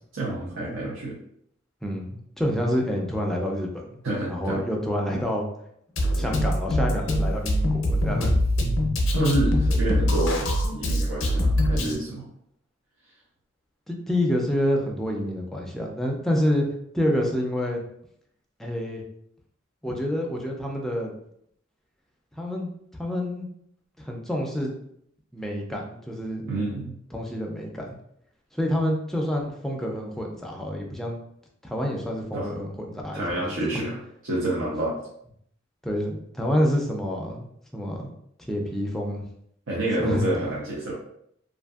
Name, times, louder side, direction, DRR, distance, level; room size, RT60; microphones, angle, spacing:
voice 1, 0.1-1.2 4.0-4.6 9.1-12.2 26.4-26.9 32.3-32.5 33.1-34.0 34.2-35.0 39.7-40.9, right 1 dB, 75° right, -6 dB, 0.6 m, -28 dB
voice 2, 1.8-4.0 4.3-5.5 6.1-8.4 13.9-16.6 16.9-17.8 18.6-19.0 19.8-21.1 22.4-22.7 23.0-23.5 24.0-24.7 25.3-26.5 27.1-27.9 28.5-31.2 31.6-33.8 35.8-37.5 37.7-38.2 38.5-39.2 40.0-40.2, equal, ahead, -1 dB, 0.4 m, -28 dB
Drum kit, 6.0-12.0, left 1 dB, 80° left, 0.5 m, -23 dB
2.5 x 2.5 x 2.3 m, 0.71 s
head